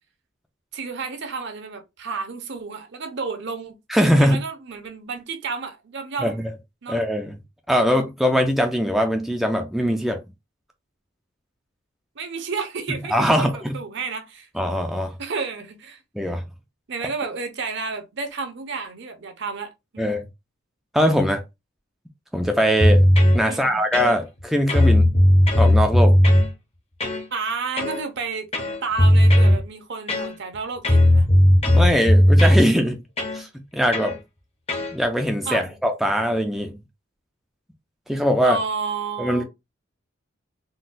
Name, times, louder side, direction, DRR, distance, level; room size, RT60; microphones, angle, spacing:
voice 1, 0.7-3.8 4.2-6.4 6.8-7.0 12.2-14.5 15.2-16.0 16.9-20.3 23.4-23.8 27.3-28.5 28.8-31.3 35.5-35.8 38.4-39.4, right 4 dB, 55° right, 0.7 m, -31 dB
voice 2, 3.9-4.4 6.2-6.3 6.9-7.4 7.7-10.2 13.1-13.7 14.6-15.1 16.2-16.4 20.0-20.3 20.9-21.4 22.3-23.0 23.3-25.1 25.5-26.2 31.7-33.0 33.3-34.2 34.9-36.8 38.1-38.6 39.2-39.4, equal, ahead, 0.3 m, -21 dB
sound 1, 22.8-23.4 23.9-24.4 24.7-26.5 27.0-27.2 27.8-28.0 28.5-29.6 30.1-30.6 30.8-32.6 33.2-33.4 33.9-34.2 34.7-34.9, left 1 dB, 30° left, 0.7 m, -16 dB
3.8 x 2.2 x 2.5 m
head